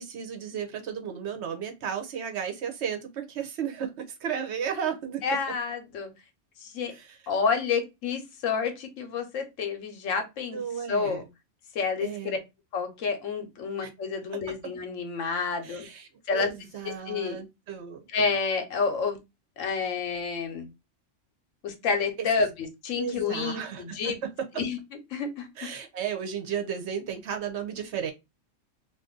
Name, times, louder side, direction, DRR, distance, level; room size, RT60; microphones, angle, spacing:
voice 1, 0.0-5.2 6.9-7.1 10.5-11.3 12.0-12.4 13.8-13.9 14.3-14.5 15.6-18.1 22.2-22.5 23.0-24.1 25.6-28.1, right 8 dB, 65° right, 0.9 m, -34 dB
voice 2, 5.2-6.1 6.6-6.9 7.3-10.6 10.9-11.2 11.7-12.4 12.7-15.9 16.3-16.5 16.8-17.4 18.1-19.2 19.6-20.7 21.6-24.2 24.6-24.8 25.1-25.7, left 5 dB, 85° left, 1.1 m, -29 dB
2.5 x 2.5 x 3.6 m
omnidirectional pair, 1.3 m